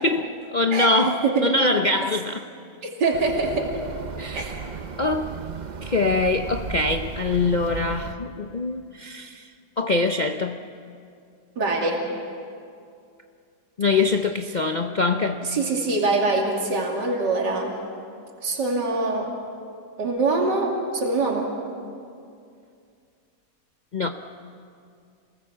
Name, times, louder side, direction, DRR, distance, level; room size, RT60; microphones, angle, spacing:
voice 1, 0.0-2.5 4.2-4.5 5.0-5.3 5.8-9.5 9.8-10.6 13.8-15.4 23.9-24.1, left 3 dB, 55° left, 5 dB, 0.5 m, -23 dB
voice 2, 1.2-1.6 2.8-3.7 4.3-4.5 11.6-12.0 15.5-17.8 18.4-19.3 20.0-21.6, right 3 dB, 75° right, 0 dB, 3.2 m, -24 dB
sound 1, 3.1-8.2, right 5 dB, 55° right, 0.5 m, -35 dB
27.5 x 20.0 x 7.2 m, 2.4 s
omnidirectional pair, 1.9 m